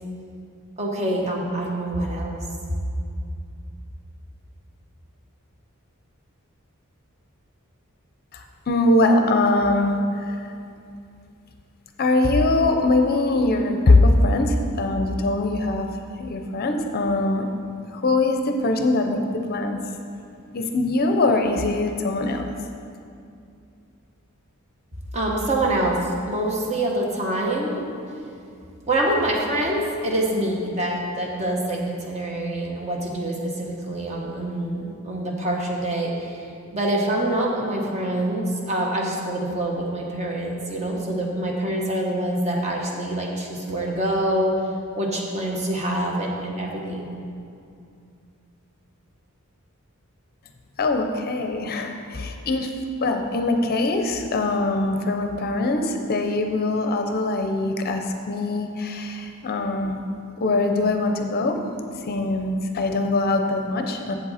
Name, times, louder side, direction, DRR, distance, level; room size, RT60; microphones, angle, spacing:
voice 1, 0.8-2.4 25.1-27.8 28.9-44.5 45.0-47.1, right 1 dB, 30° right, -1 dB, 1.1 m, -25 dB
voice 2, 8.3-10.0 10.3-10.4 12.0-15.9 16.2-17.5 17.9-19.2 19.5-19.8 20.5-22.5 50.8-52.7 53.0-60.0 60.4-61.6 62.1-64.1, left 2 dB, 45° left, 5 dB, 0.6 m, -22 dB
7.7 x 7.5 x 4.2 m, 2.5 s
head